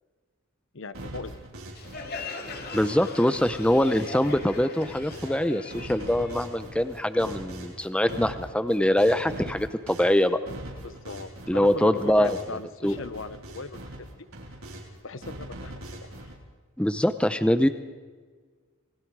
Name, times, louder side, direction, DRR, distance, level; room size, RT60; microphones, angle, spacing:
voice 1, 0.7-1.4 10.8-14.1 15.0-16.3, left 4 dB, 65° left, 14 dB, 0.9 m, -39 dB
sound 1, 0.9-3.1 3.3-5.4 5.7-12.6 12.8-14.9 15.2-16.3, right 1 dB, 80° right, 4.8 m, -42 dB
Crowd, 1.8-7.2, left 4 dB, 45° left, 2.4 m, -40 dB
voice 2, 2.7-10.4 11.5-12.4 12.8-13.0 16.8-17.7, left 1 dB, 5° left, 11 dB, 0.7 m, -23 dB
27.5 x 20.5 x 4.8 m, 1.5 s
head